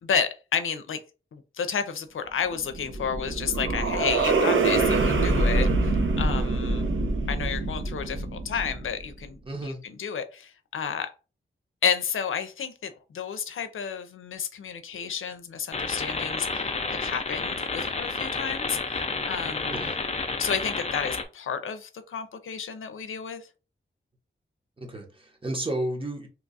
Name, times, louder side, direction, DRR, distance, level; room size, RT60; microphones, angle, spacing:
voice 1, 0.0-1.0 1.3-6.9 7.3-11.1 11.8-18.8 19.3-19.9 20.4-23.5, left 7 dB, 85° left, 9 dB, 0.5 m, -31 dB
sound 1, 2.5-9.0, right 3 dB, 75° right, 0.7 m, -25 dB
voice 2, 9.5-9.8 19.7-20.0 24.8-26.3, right 1 dB, 25° right, 2 dB, 1.0 m, -32 dB
sound 2, 15.7-21.2, left 3 dB, 35° left, 0.6 m, -30 dB
2.9 x 2.3 x 3.9 m, 0.32 s
wide cardioid pair, 85°, 20 cm